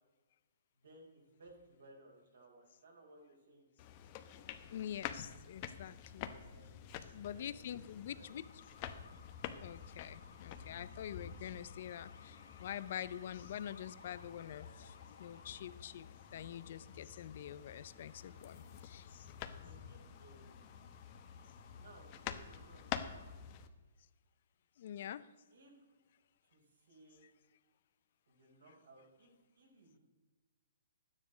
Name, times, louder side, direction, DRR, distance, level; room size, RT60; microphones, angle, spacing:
voice 1, 0.7-3.7 6.4-6.9 7.2-8.3 11.4-11.5 18.3-18.8 19.5-20.6 21.7-23.4 25.5-25.8 26.4-27.2 28.3-30.0, right 2 dB, 80° right, -1 dB, 4.2 m, -61 dB
sound 1, 3.8-23.7, left 9 dB, 35° left, 0.9 m, -49 dB
voice 2, 4.7-6.3 7.1-8.4 9.6-19.3 24.8-25.3, left 10 dB, 55° left, 16 dB, 0.5 m, -46 dB
sound 2, 8.2-23.3, left 5 dB, 75° left, 2.1 m, -61 dB
12.0 x 9.8 x 5.0 m, 1.3 s
hypercardioid pair, 145°, 0 cm